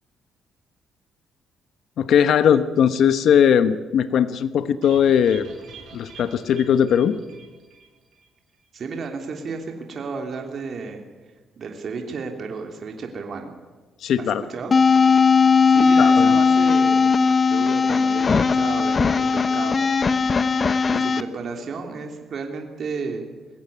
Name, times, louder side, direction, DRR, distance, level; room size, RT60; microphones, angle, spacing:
voice 1, 2.0-5.5 5.9-7.2 14.0-14.4 16.0-16.3, left 8 dB, 70° left, 12 dB, 1.1 m, -19 dB
sound 1, 4.8-8.3 8.5-8.6 8.9-9.0, right 6 dB, 80° right, 6.5 m, -45 dB
voice 2, 8.7-11.0 11.6-13.5 14.2-14.8 15.7-17.1 17.5-20.2 20.9-23.2, right 4 dB, 55° right, 3 dB, 3.1 m, -33 dB
sound 2, 14.7-21.2, left 5 dB, 35° left, 1.0 m, -18 dB
22.0 x 16.0 x 9.5 m, 1.3 s
cardioid pair, 90°, 0 cm